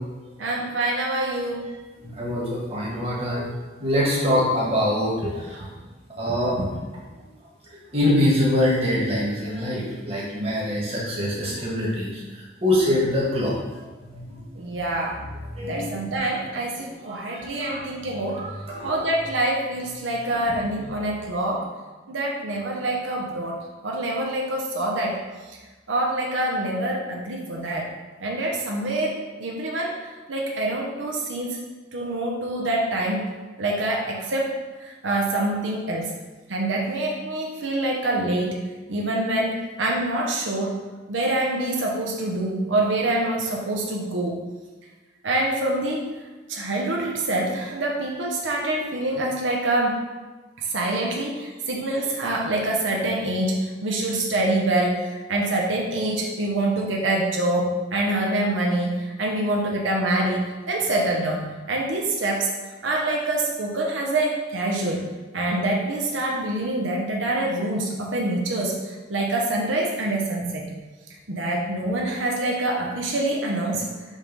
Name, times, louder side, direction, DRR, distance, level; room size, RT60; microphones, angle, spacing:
voice 1, 0.4-1.7 14.6-15.3 15.6-18.5 18.8-21.7 22.1-25.2 25.5-25.6 25.9-27.9 28.2-31.6 31.9-33.2 33.6-36.1 36.5-38.6 38.9-40.8 41.1-44.4 45.2-46.1 46.5-50.0 50.6-62.5 62.8-65.1 65.3-70.8 71.3-73.9, right 1 dB, 90° right, -1 dB, 0.9 m, -25 dB
voice 2, 2.0-3.5 3.8-5.7 6.2-6.6 7.9-13.6 14.0-14.4 15.6-15.8 17.1-17.8 18.3-18.9, left 1 dB, 30° right, -5 dB, 1.5 m, -24 dB
5.4 x 3.3 x 5.4 m, 1.3 s
head